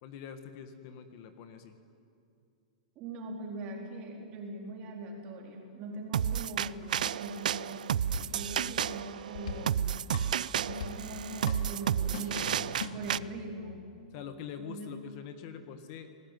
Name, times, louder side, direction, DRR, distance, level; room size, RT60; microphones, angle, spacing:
voice 1, 0.0-1.8 14.1-16.1, left 8 dB, 30° left, 8 dB, 1.5 m, -44 dB
voice 2, 3.0-10.3 10.5-12.6 12.9-13.9 14.6-15.0, right 2 dB, 20° right, 1 dB, 3.9 m, -41 dB
sound 1, 6.1-13.2, right 9 dB, 80° right, 0.5 m, -32 dB
sound 2, 8.1-13.5, left 4 dB, 55° left, 3.5 m, -43 dB
30.0 x 20.0 x 9.4 m, 2.5 s
supercardioid pair, 180°, 4 cm